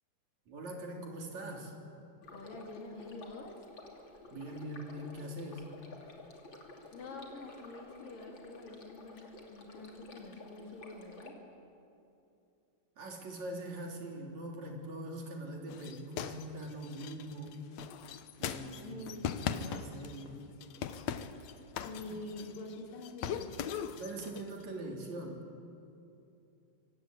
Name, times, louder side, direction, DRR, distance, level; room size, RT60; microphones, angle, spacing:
voice 1, 0.5-1.7 4.3-5.7 13.0-17.6 18.4-19.0 19.5-20.5 22.1-22.2 23.9-25.4, right 1 dB, 60° right, 1 dB, 4.7 m, -42 dB
Stream, 2.2-11.3, left 2 dB, 40° left, 3.3 m, -52 dB
voice 2, 2.3-3.6 6.9-11.4 18.8-19.9 21.4-21.5 21.8-23.6, left 2 dB, 90° left, 0 dB, 5.3 m, -46 dB
sound 1, 15.7-20.3 20.6-22.8 23.0-24.5, left 8 dB, 65° left, 2.1 m, -39 dB
26.0 x 25.0 x 9.1 m, 2.7 s
omnidirectional pair, 3.8 m